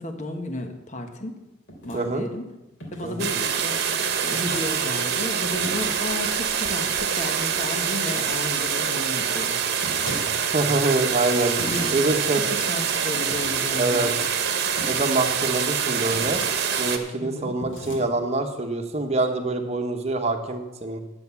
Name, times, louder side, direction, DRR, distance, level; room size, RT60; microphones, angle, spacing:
voice 1, 0.0-1.4 1.8-2.5 2.9-9.6 11.7-11.9 12.3-14.2 17.2-17.6, left 1 dB, 35° left, 5 dB, 1.2 m, -33 dB
sound 1, 1.7-2.0 2.8-3.2 4.4-4.8 5.6-6.1 9.8-10.3 11.6-11.9 13.3-13.7 14.8-15.2 16.1-16.6 17.6-18.0, equal, 65° left, 2.8 m, -37 dB
voice 2, 1.9-2.3 3.0-3.3 10.5-12.4 13.8-14.1 14.9-16.4 16.8-21.0, right 2 dB, 30° right, 4 dB, 1.1 m, -25 dB
sound 2, 3.2-17.0, right 7 dB, 55° right, 1.1 m, -25 dB
10.5 x 7.2 x 7.1 m, 1.0 s
head